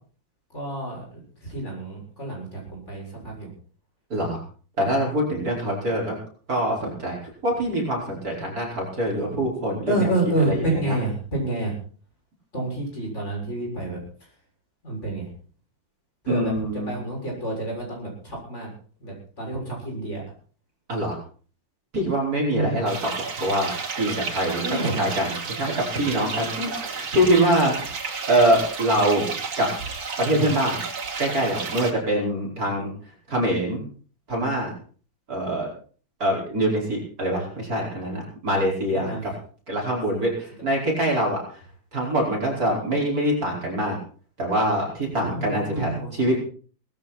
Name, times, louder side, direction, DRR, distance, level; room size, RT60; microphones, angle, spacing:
voice 1, 0.5-3.5 9.9-11.7 12.5-14.0 14.8-15.3 16.2-18.7 19.0-20.2 22.5-22.8 24.6-25.0 38.9-39.2 45.1-46.4, right 2 dB, 35° left, -1 dB, 7.3 m, -29 dB
voice 2, 4.1-4.4 4.8-6.2 6.5-7.2 7.4-10.1 10.4-11.0 16.3-16.9 20.9-21.2 21.9-27.9 28.3-29.3 29.6-29.7 30.2-30.8 31.2-32.9 33.3-33.8 34.3-34.7 35.3-35.7 36.2-39.1 39.7-41.6 41.9-44.0 44.4-46.4, right 1 dB, 45° right, -2 dB, 5.6 m, -24 dB
sound 1, 22.9-31.9, right 5 dB, 80° right, 3.6 m, -32 dB
18.5 x 14.5 x 4.3 m, 0.43 s
omnidirectional pair, 2.2 m